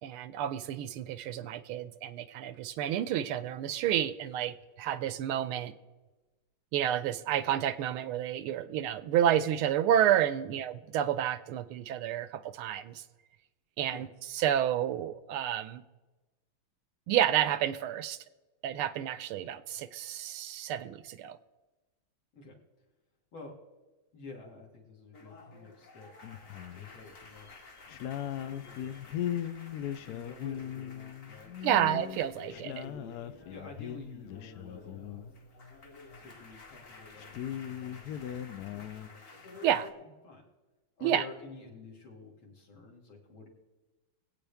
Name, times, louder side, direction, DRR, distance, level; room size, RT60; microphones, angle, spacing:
voice 1, 0.0-5.7 6.7-13.0 13.8-14.1 14.3-15.8 17.1-18.2 18.6-21.4 31.6-32.7 39.6-39.9 41.0-41.2, right 10 dB, 90° right, 14 dB, 1.5 m, -30 dB
voice 2, 24.1-26.1 26.7-27.5 28.3-29.2 30.0-31.9 32.5-33.2 33.5-35.2 36.2-38.2 38.5-39.5 40.0-40.4 41.0-43.5, left 3 dB, 70° left, -1 dB, 3.2 m, -50 dB
sound 1, 25.1-33.9 34.2-39.9, left 3 dB, 40° left, 1.8 m, -52 dB
sound 2, 26.2-26.9 27.3-27.5 27.9-35.4 36.1-36.2 36.5-36.6 36.9-39.1, left 10 dB, 85° left, 0.8 m, -39 dB
22.0 x 8.5 x 3.5 m, 1.1 s
omnidirectional pair, 2.3 m